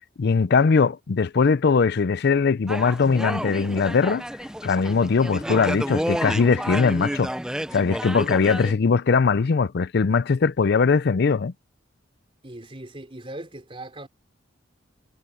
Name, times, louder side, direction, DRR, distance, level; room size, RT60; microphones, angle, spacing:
voice 1, 0.2-4.2 4.6-7.3 7.7-11.5, left 5 dB, 60° left, 0.5 m, -20 dB
sound 1, 2.7-8.7, equal, 5° right, 0.6 m, -30 dB
voice 2, 12.4-14.1, right 1 dB, 30° right, 3.2 m, -39 dB
head